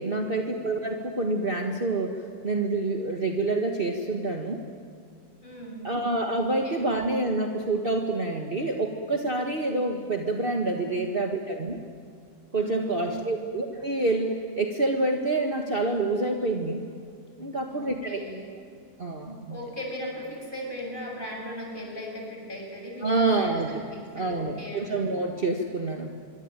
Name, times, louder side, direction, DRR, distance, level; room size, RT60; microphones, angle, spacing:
voice 1, 0.0-2.2 2.4-4.6 5.8-11.8 12.5-14.3 14.6-16.8 17.4-18.2 19.0-19.6 23.0-23.8 24.2-26.2, right 2 dB, 30° right, 2 dB, 1.8 m, -27 dB
voice 2, 5.4-5.9 6.6-6.8 10.8-11.0 12.5-13.5 17.7-18.5 19.5-23.6 23.9-25.0, equal, 25° left, 0 dB, 7.2 m, -38 dB
25.0 x 24.5 x 9.0 m, 2.4 s
omnidirectional pair, 1.9 m